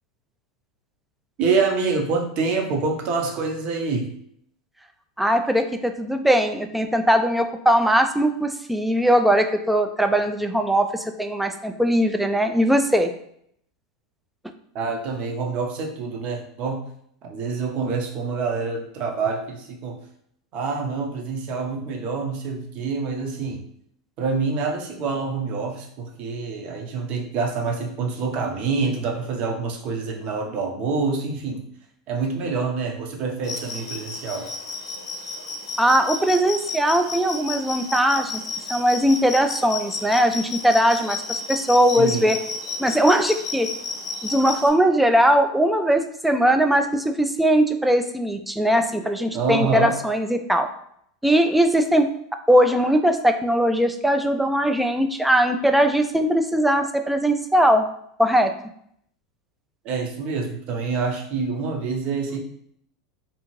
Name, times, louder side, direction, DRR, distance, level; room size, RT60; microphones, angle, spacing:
voice 1, 1.4-4.1 14.7-16.8 17.3-20.0 20.5-23.6 24.2-31.6 32.1-34.5 42.0-42.4 49.3-49.9 59.8-62.4, right 4 dB, 45° right, 2 dB, 0.7 m, -26 dB
voice 2, 5.2-13.1 35.8-38.4 38.7-42.4 42.8-43.7 44.2-50.7 51.2-52.1 52.5-57.9 58.2-58.5, equal, 5° right, 6 dB, 0.3 m, -20 dB
sound 1, 33.4-44.7, left 4 dB, 75° left, 0.6 m, -32 dB
2.7 x 2.4 x 3.0 m, 0.69 s
hypercardioid pair, 100°, 3 cm